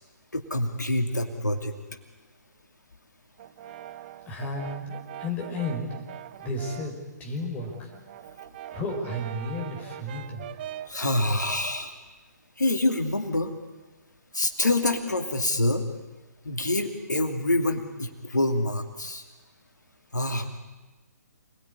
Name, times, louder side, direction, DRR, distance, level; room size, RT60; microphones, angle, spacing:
voice 1, 0.3-1.8 10.9-11.9 12.6-13.5 14.3-15.9 16.4-19.2 20.1-20.6, left 1 dB, 80° left, 5 dB, 2.6 m, -26 dB
Brass instrument, 3.4-7.0 7.4-11.0, right 12 dB, 35° right, 0.9 m, -42 dB
voice 2, 4.3-5.9 6.4-6.9 7.2-7.9 8.7-10.4, left 2 dB, 15° left, 1 dB, 5.6 m, -33 dB
27.5 x 20.0 x 9.9 m, 1.2 s
figure-of-eight pair, 130°, 10 cm